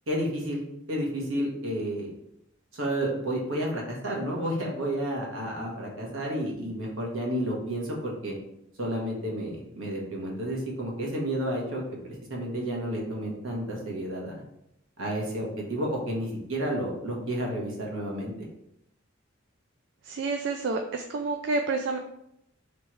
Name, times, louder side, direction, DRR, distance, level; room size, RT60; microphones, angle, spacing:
voice 1, 0.1-0.6 0.9-2.1 2.7-8.3 8.8-14.4 15.0-18.5, right 1 dB, 75° right, -2 dB, 1.3 m, -31 dB
voice 2, 20.0-22.0, right 3 dB, 60° right, 5 dB, 0.3 m, -29 dB
3.3 x 3.1 x 4.5 m, 0.80 s
head